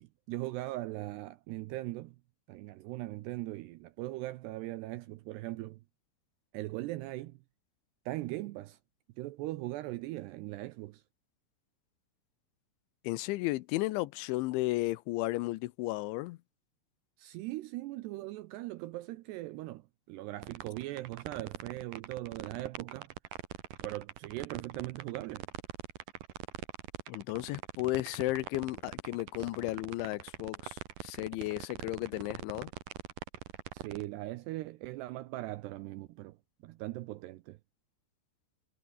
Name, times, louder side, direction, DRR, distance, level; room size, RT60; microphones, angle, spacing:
voice 1, 0.0-2.2 2.5-5.8 6.5-7.4 8.1-8.8 9.2-11.0 17.2-23.1 23.8-25.5 33.7-36.4 36.6-37.6, right 17 dB, 90° right, 2.5 m, -40 dB
voice 2, 13.0-16.4 27.1-32.7, left 19 dB, 80° left, 3.0 m, -34 dB
sound 1, 20.4-34.0, right 11 dB, 60° right, 2.5 m, -42 dB
omnidirectional pair, 5.6 m